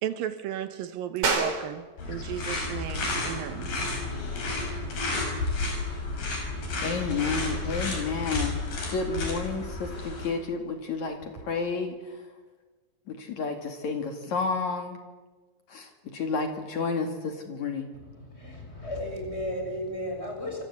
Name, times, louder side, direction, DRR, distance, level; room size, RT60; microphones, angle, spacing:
voice 1, 0.0-3.7, right 10 dB, 80° right, 11 dB, 2.9 m, -34 dB
sound 1, 1.2-11.5, right 4 dB, 60° right, 5.3 m, -38 dB
sound 2, 2.0-10.3, left 2 dB, 75° left, 7.5 m, -31 dB
voice 2, 6.8-8.5 8.9-12.2 13.1-15.0 15.7-17.9, left 4 dB, 60° left, 5 dB, 3.4 m, -31 dB
voice 3, 17.9-20.6, left 1 dB, 15° left, 3 dB, 6.8 m, -34 dB
27.0 x 25.0 x 8.4 m, 1.3 s
omnidirectional pair, 4.0 m